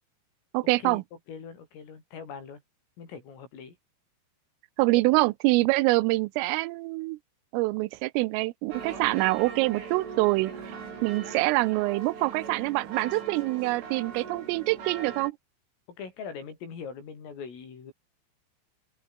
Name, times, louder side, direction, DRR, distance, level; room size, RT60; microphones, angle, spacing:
voice 1, 0.5-1.0 4.8-7.2 7.5-10.5 11.0-15.4, right 22 dB, 90° right, 3.3 m, -25 dB
voice 2, 1.3-2.6 3.0-3.8 16.0-17.9, left 6 dB, 85° left, 8.9 m, -41 dB
sound 1, 8.7-15.3, right 6 dB, 70° right, 8.5 m, -40 dB
omnidirectional pair, 5.7 m